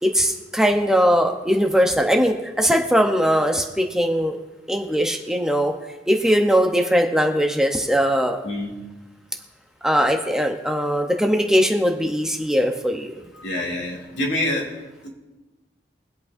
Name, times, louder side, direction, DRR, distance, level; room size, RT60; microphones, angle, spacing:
voice 1, 0.0-4.4 4.7-5.7 6.1-8.4 9.8-13.2 14.5-14.6, equal, 5° right, 2 dB, 0.7 m, -20 dB
voice 2, 8.4-8.8 13.3-14.7 15.0-15.1, left 1 dB, 85° left, -2 dB, 2.4 m, -26 dB
23.5 x 8.3 x 2.6 m, 1.1 s
head